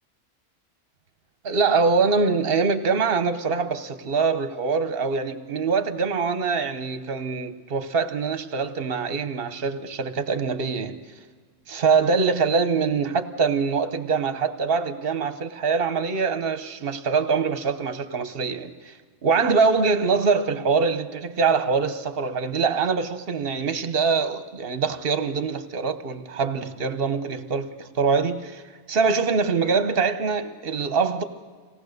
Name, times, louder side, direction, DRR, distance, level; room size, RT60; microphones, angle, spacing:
voice 1, 1.4-11.0 11.7-18.9 19.2-28.6 28.9-31.2, right 5 dB, 50° right, 1.2 m, -24 dB
25.5 x 18.0 x 6.7 m
omnidirectional pair, 1.3 m